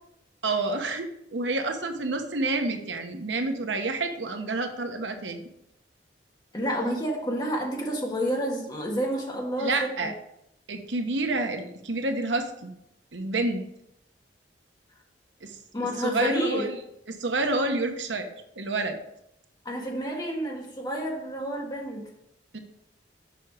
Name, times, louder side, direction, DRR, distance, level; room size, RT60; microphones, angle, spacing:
voice 1, 0.4-1.0 1.3-5.4 9.6-10.1 10.7-12.7 13.1-13.6 15.4-15.6 16.0-16.8 17.1-18.3 18.5-19.0 22.5-22.6, right 2 dB, 80° right, 6 dB, 1.0 m, -28 dB
voice 2, 6.5-10.1 15.7-16.7 19.6-22.1, equal, 25° left, -1 dB, 1.7 m, -29 dB
6.8 x 5.7 x 5.0 m, 0.78 s
head